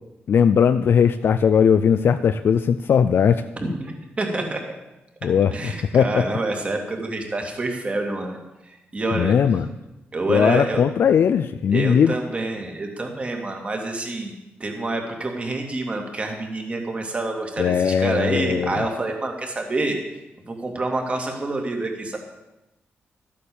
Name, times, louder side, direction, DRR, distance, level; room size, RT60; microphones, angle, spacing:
voice 1, 0.3-3.4 5.2-6.2 9.1-9.7 10.3-12.1 17.6-18.8, left 7 dB, 65° left, 9 dB, 0.5 m, -19 dB
voice 2, 3.6-4.6 5.5-8.4 8.6-9.3 10.1-10.8 11.7-14.3 14.6-20.0 20.5-22.2, right 2 dB, 30° right, 3 dB, 2.3 m, -27 dB
12.5 x 8.6 x 7.0 m, 0.99 s
wide cardioid pair, 115°, 4 cm